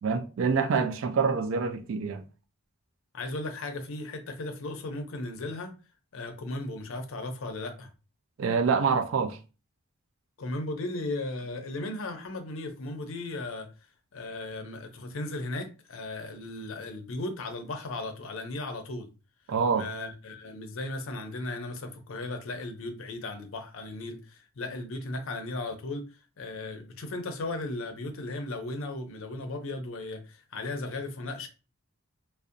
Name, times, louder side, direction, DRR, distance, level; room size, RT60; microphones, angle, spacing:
voice 1, 0.0-2.2 8.4-9.4 19.5-19.9, right 5 dB, 60° right, 0.3 m, -26 dB
voice 2, 3.1-5.7 6.1-7.9 10.4-13.7 14.1-19.1 19.7-31.5, left 2 dB, 65° left, 0.5 m, -36 dB
2.6 x 2.0 x 2.5 m
head